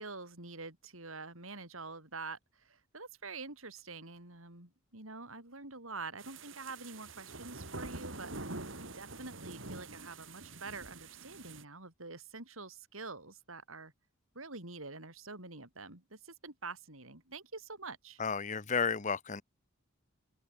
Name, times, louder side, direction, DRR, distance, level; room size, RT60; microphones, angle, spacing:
voice 1, 0.0-13.9 14.4-18.2, right 3 dB, 85° right, 7.0 m, -46 dB
sound 1, 6.2-11.6, right 2 dB, 65° right, 4.5 m, -46 dB
voice 2, 18.2-19.4, left 5 dB, 35° left, 1.0 m, -32 dB
open air
head